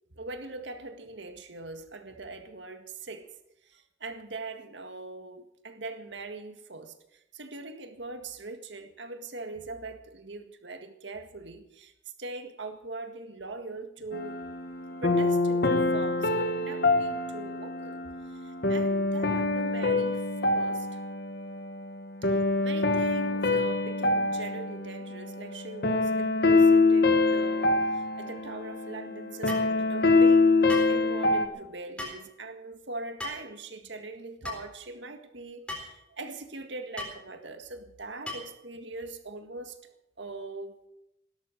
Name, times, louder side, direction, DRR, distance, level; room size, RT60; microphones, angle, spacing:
voice 1, 0.2-3.3 3.6-11.9 12.2-14.4 15.0-18.0 18.3-21.0 22.2-39.9 40.2-40.9, right 3 dB, 65° right, 1.8 m, -41 dB
sound 1, 14.1-31.5, left 3 dB, 55° left, 1.4 m, -25 dB
sound 2, 29.5-29.7 30.7-31.0 32.0-32.2 33.2-33.5 34.4-34.6 35.7-35.9 37.0-37.2 38.3-38.6, left 2 dB, 5° left, 4.1 m, -37 dB
17.0 x 12.5 x 6.5 m
head